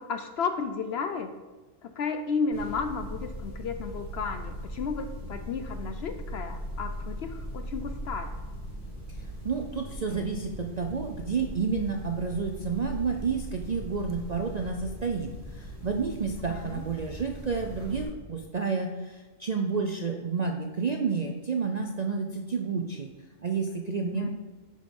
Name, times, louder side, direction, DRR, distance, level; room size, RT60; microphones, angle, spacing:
voice 1, 0.0-1.3 1.8-8.4 16.5-16.8 24.1-24.3, left 5 dB, 65° left, 8 dB, 0.7 m, -33 dB
sound 1, 2.5-18.0, equal, 25° left, 3.0 m, -39 dB
voice 2, 9.2-23.1 23.4-24.3, right 5 dB, 50° right, 3 dB, 0.5 m, -30 dB
9.3 x 5.0 x 5.2 m, 1.2 s
omnidirectional pair, 1.4 m